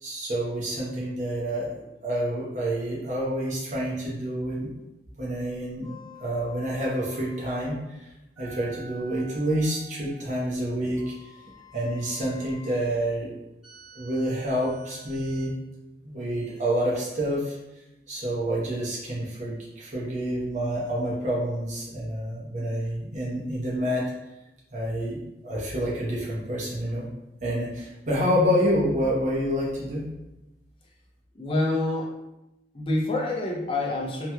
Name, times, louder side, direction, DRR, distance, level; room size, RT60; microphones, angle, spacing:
voice 1, 0.0-1.7 2.0-4.7 5.1-5.9 6.2-8.0 8.4-11.1 11.7-13.3 13.9-15.5 16.0-17.6 18.1-24.0 24.7-27.1 27.4-30.1, equal, 40° right, -6 dB, 0.9 m, -28 dB
sound 1, 5.8-7.6 8.4-10.2 11.0-12.9 13.6-15.5 16.3-16.5, equal, 5° right, 1.1 m, -49 dB
voice 2, 31.3-32.1 32.7-34.3, left 2 dB, 30° left, -2 dB, 0.5 m, -27 dB
3.1 x 2.9 x 2.2 m, 0.93 s
head